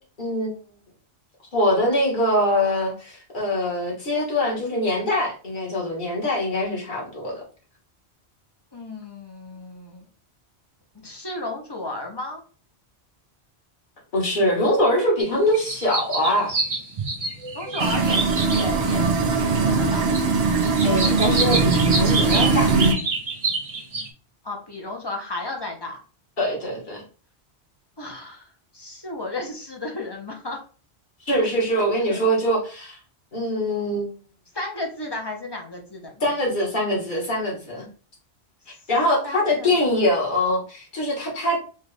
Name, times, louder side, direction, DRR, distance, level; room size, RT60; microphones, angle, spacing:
voice 1, 0.2-0.5 1.5-7.4 14.1-16.5 20.8-22.8 26.4-27.0 31.2-33.0 33.3-34.1 36.2-37.9 38.9-41.6, left 1 dB, 50° left, -3 dB, 1.6 m, -23 dB
voice 2, 8.7-10.0 10.9-12.4 17.5-20.2 24.4-26.0 28.0-28.5 28.7-30.6 31.4-32.2 34.5-36.1 39.2-39.7, left 2 dB, 25° left, 1 dB, 0.8 m, -34 dB
sound 1, 15.2-15.3 15.5-19.0 19.2-19.3 19.8-20.2 20.6-24.1, right 3 dB, 40° right, 0.6 m, -27 dB
sound 2, 17.8-22.9, right 4 dB, 70° right, 0.9 m, -20 dB
4.4 x 2.4 x 3.3 m, 0.38 s
omnidirectional pair, 1.1 m